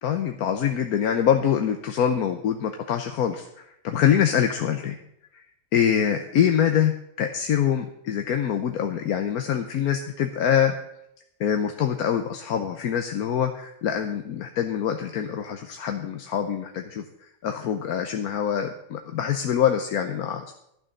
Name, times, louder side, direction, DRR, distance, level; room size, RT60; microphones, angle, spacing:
voice 1, 0.0-5.0 5.3-5.4 5.7-6.9 7.2-10.8 11.4-20.5, left 9 dB, 85° left, 6 dB, 1.3 m, -24 dB
12.0 x 6.4 x 8.8 m, 0.79 s
omnidirectional pair, 1.5 m